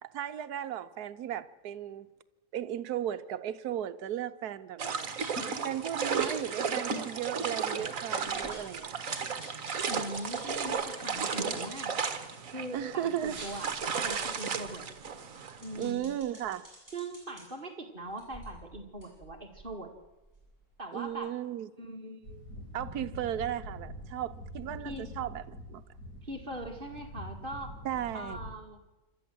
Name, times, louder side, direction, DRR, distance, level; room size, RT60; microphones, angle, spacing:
voice 1, 0.0-2.1 2.5-5.1 5.6-9.1 12.7-13.4 15.7-16.6 20.9-21.7 22.7-25.8 27.8-28.4, right 11 dB, 75° right, 1.4 m, -35 dB
sound 1, 4.8-15.9, right 6 dB, 55° right, 1.8 m, -34 dB
sound 2, 5.2-5.5 6.2-6.4 6.9-7.0 7.3-7.4 7.8-7.9 8.3-8.8 9.1-12.2 12.6-17.4 18.0-20.7 21.1-21.2, right 1 dB, 10° left, 7.8 m, -51 dB
voice 2, 9.9-12.0 12.5-13.7 14.0-14.9 15.6-16.1 16.9-19.9 20.8-21.3 21.8-22.4 24.8-25.1 26.2-27.8 28.1-28.8, right 1 dB, 35° right, 2.4 m, -41 dB
sound 3, 22.2-28.5, left 1 dB, 75° left, 4.3 m, -45 dB
27.0 x 12.5 x 7.8 m
omnidirectional pair, 1.7 m